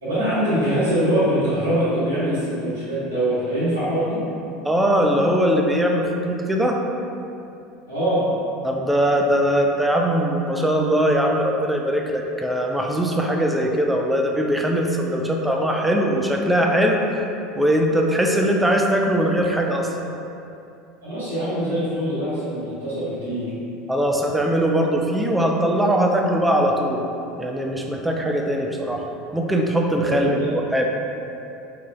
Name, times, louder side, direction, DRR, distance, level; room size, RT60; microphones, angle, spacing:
voice 1, 0.0-4.2 7.9-8.3 21.0-23.5 30.0-30.5, right 1 dB, 80° right, -12 dB, 1.1 m, -23 dB
voice 2, 4.6-6.8 8.6-17.0 17.6-20.0 23.9-27.1 27.4-29.0 29.3-30.9, equal, 5° right, 0 dB, 0.3 m, -21 dB
3.0 x 2.3 x 2.2 m, 2.7 s
figure-of-eight pair, 70°, 0 cm